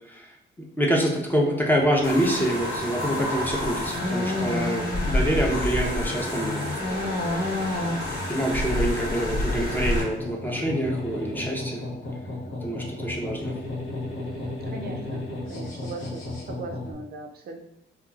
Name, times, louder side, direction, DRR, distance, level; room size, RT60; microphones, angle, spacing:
voice 1, 0.6-6.6 8.3-11.8 12.6-13.5, equal, 10° left, -1 dB, 0.5 m, -26 dB
sound 1, 2.0-10.0, left 1 dB, 50° left, 1.0 m, -28 dB
sound 2, 2.6-16.9, left 2 dB, 85° left, 1.1 m, -36 dB
voice 2, 14.3-17.6, right 3 dB, 50° right, 3 dB, 0.4 m, -39 dB
2.8 x 2.3 x 2.4 m, 0.79 s
cardioid pair, 90°, 20 cm